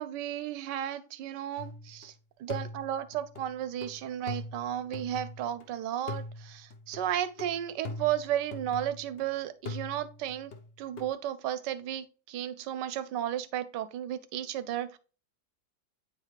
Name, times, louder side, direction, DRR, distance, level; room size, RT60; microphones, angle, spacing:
voice 1, 0.0-2.1 2.4-10.5 10.8-15.0, right 11 dB, 80° right, 1.3 m, -34 dB
sound 1, 1.6-2.1 2.5-5.7 6.1-9.2 9.7-11.1, left 3 dB, 50° left, 0.7 m, -42 dB
8.7 x 4.1 x 3.2 m
omnidirectional pair, 1.9 m